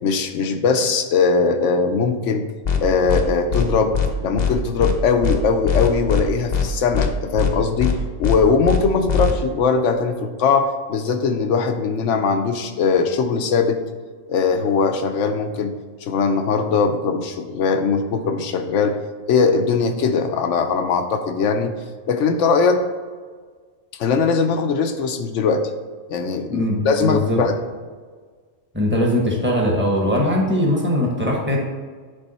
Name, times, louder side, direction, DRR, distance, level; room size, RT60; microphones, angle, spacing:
voice 1, 0.0-2.5 2.8-4.0 4.2-13.8 14.3-19.0 19.3-21.7 22.1-22.8 24.0-25.7 26.1-27.6, left 5 dB, 75° left, 7 dB, 1.0 m, -20 dB
sound 1, 2.6-2.8 3.1-3.2 3.5-3.7 3.9-4.1 4.4-4.5 4.8-4.9 5.2-5.4 5.6-6.2 6.5-6.7 6.9-7.1 7.4-7.5 7.8-7.9 8.2-8.4 8.6-8.8 9.1-9.3, left 7 dB, 40° left, 0.7 m, -20 dB
voice 2, 26.5-27.4 28.7-31.6, left 1 dB, 10° right, -2 dB, 1.2 m, -20 dB
9.7 x 3.5 x 4.2 m, 1.5 s
omnidirectional pair, 1.3 m